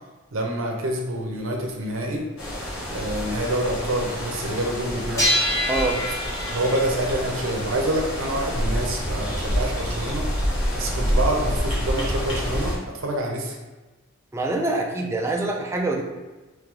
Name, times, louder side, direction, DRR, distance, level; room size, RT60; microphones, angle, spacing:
voice 1, 0.3-2.3 2.9-5.3 6.4-10.2 10.7-13.6, right 1 dB, 75° right, 1 dB, 0.7 m, -27 dB
sound 1, 1.8-1.9 2.4-2.5 3.0-3.2 5.2-8.3, equal, 15° left, 1.1 m, -27 dB
sound 2, 2.4-12.8, equal, 90° left, 1.3 m, -28 dB
voice 2, 5.7-6.0 14.3-16.0, right 2 dB, 15° right, 1 dB, 0.4 m, -25 dB
3.3 x 3.1 x 3.7 m, 1.2 s
head